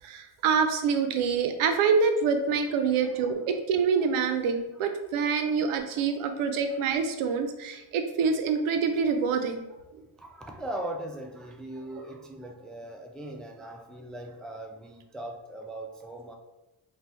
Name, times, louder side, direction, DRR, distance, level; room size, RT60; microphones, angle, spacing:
voice 1, 0.0-9.6 10.0-10.1, right 5 dB, 75° right, 7 dB, 0.6 m, -26 dB
voice 2, 10.2-16.3, right 1 dB, ahead, 2 dB, 0.3 m, -39 dB
2.7 x 2.2 x 3.3 m, 0.95 s
supercardioid pair, 55°, 50 cm